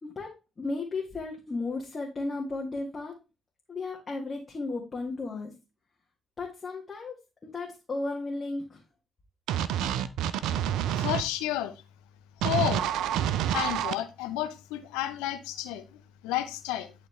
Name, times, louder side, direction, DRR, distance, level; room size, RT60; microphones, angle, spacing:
voice 1, 0.0-3.2 3.7-5.5 6.4-7.1 7.5-8.8, left 3 dB, 35° left, 2.0 m, -34 dB
sound 1, 9.5-11.2 12.4-13.9, right 10 dB, 70° right, 0.5 m, -28 dB
voice 2, 11.0-11.8 12.4-12.9 13.5-16.9, left 13 dB, 80° left, 0.8 m, -31 dB
11.0 x 4.1 x 3.4 m
hypercardioid pair, 45°, 0 cm